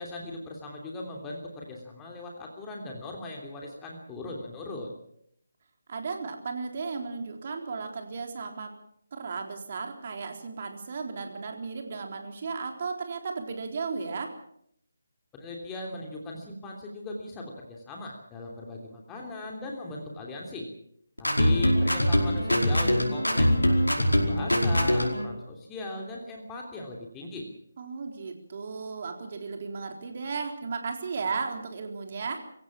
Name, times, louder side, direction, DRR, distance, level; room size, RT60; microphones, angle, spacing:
voice 1, 0.0-4.9 15.3-20.7 21.2-27.5, left 2 dB, 15° left, 0 dB, 3.1 m, -39 dB
voice 2, 5.9-8.7 9.1-14.3 27.8-32.4, right 4 dB, 40° right, 4 dB, 3.9 m, -35 dB
sound 1, 21.2-25.3, equal, 90° left, 5.0 m, -23 dB
25.0 x 16.0 x 7.5 m, 0.71 s
figure-of-eight pair, 150°, 0 cm